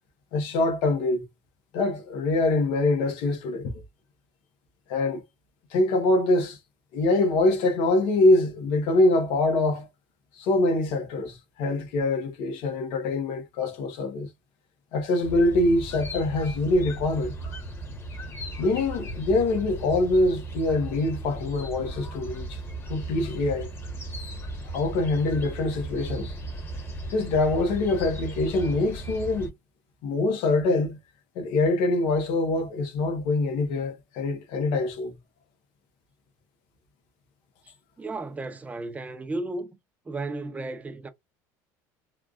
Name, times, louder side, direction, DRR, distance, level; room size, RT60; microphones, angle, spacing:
voice 1, 0.3-1.2 1.7-3.7 4.9-5.2 5.7-6.6 6.9-9.9 10.4-14.3 14.9-17.3 18.6-22.6 22.9-23.7 24.7-26.3 27.1-29.5 30.0-31.0 31.3-35.1, left 2 dB, 70° left, 1.2 m, -24 dB
sound 1, 15.2-29.5, right 2 dB, 25° left, 1.4 m, -36 dB
voice 2, 38.0-39.8 40.1-41.1, right 2 dB, 15° right, 0.7 m, -34 dB
3.3 x 2.4 x 2.4 m
supercardioid pair, 105°, 9 cm